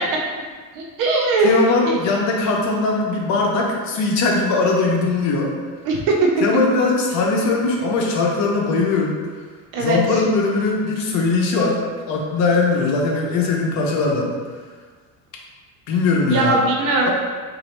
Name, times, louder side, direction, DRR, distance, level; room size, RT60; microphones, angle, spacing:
voice 1, 0.8-1.9 5.8-6.2 9.7-10.2 16.3-17.1, right 3 dB, 65° right, 0 dB, 0.6 m, -20 dB
voice 2, 1.4-5.5 6.4-9.2 9.8-11.8 12.1-14.3 15.9-16.6 17.1-17.2, left 3 dB, 50° left, -1 dB, 0.8 m, -20 dB
3.9 x 2.7 x 3.2 m, 1.5 s
cardioid pair, 165°, 35 cm